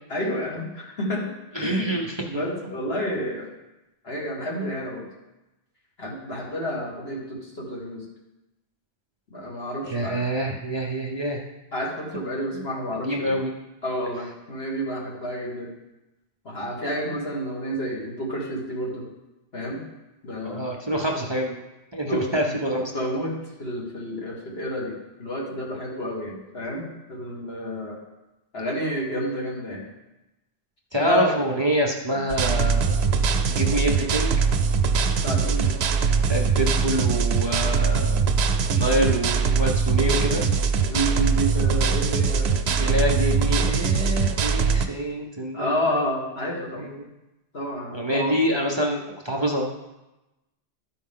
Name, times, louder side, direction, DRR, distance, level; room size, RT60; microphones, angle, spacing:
voice 1, 0.1-2.0 2.3-3.5 4.0-5.1 6.0-8.0 9.3-10.2 11.7-13.4 13.8-15.7 16.4-19.0 19.5-19.8 20.2-20.7 22.0-22.6 22.9-28.0 28.5-29.9 31.0-31.4 35.2-35.7 38.9-39.0 40.9-43.1 45.5-46.9 47.5-48.3, equal, 70° left, -4 dB, 2.2 m, -30 dB
voice 2, 1.5-2.4 9.8-11.4 12.5-12.6 13.0-13.5 20.4-21.6 21.9-22.9 30.9-33.1 33.5-34.3 36.3-38.2 38.7-40.4 42.7-45.9 46.8-47.0 47.9-49.7, equal, 30° right, 0 dB, 0.7 m, -26 dB
sound 1, 32.3-44.9, right 5 dB, 85° right, 0.9 m, -22 dB
12.5 x 4.7 x 3.7 m, 0.98 s
omnidirectional pair, 1.1 m